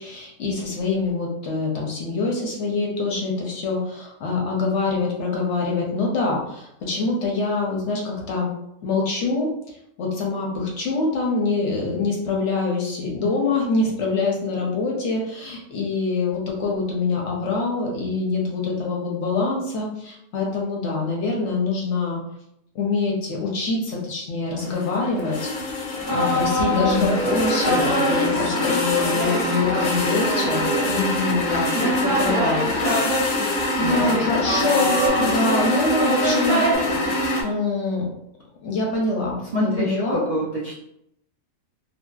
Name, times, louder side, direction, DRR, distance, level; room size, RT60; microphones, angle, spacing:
voice 1, 0.0-8.5 8.8-22.2 22.7-25.5 26.1-36.7 37.4-38.1 38.6-40.2, left 3 dB, 65° left, -2 dB, 0.8 m, -25 dB
sound 1, 24.6-37.4, left 1 dB, 85° left, 1.0 m, -25 dB
Bird, 25.2-35.1, right 2 dB, 85° right, 1.0 m, -31 dB
sound 2, 26.1-27.3 27.6-31.2 31.7-36.8, equal, 40° right, 0.7 m, -26 dB
voice 2, 33.8-34.2 39.5-40.8, equal, 65° right, -8 dB, 0.3 m, -26 dB
2.6 x 2.1 x 2.3 m, 0.78 s
omnidirectional pair, 1.5 m